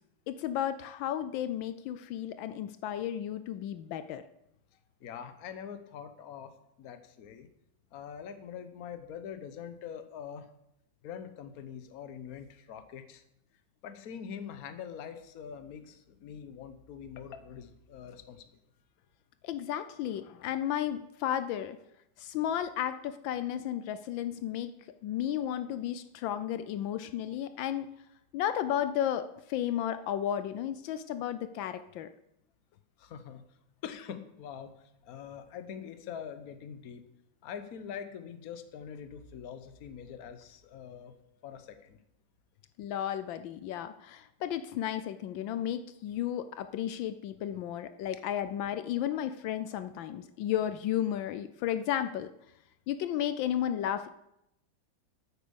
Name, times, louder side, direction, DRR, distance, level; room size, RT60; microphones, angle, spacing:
voice 1, 0.3-4.2 19.4-21.8 22.2-24.7 25.0-27.9 28.3-32.1 42.8-52.3 52.9-54.1, left 10 dB, 80° left, 11 dB, 1.3 m, -33 dB
voice 2, 5.0-7.5 7.9-10.5 11.0-13.2 13.8-18.5 33.0-33.4 33.8-37.0 37.4-41.1 41.4-42.0, left 8 dB, 55° left, 10 dB, 1.3 m, -44 dB
9.3 x 8.8 x 7.0 m, 0.81 s
omnidirectional pair, 2.1 m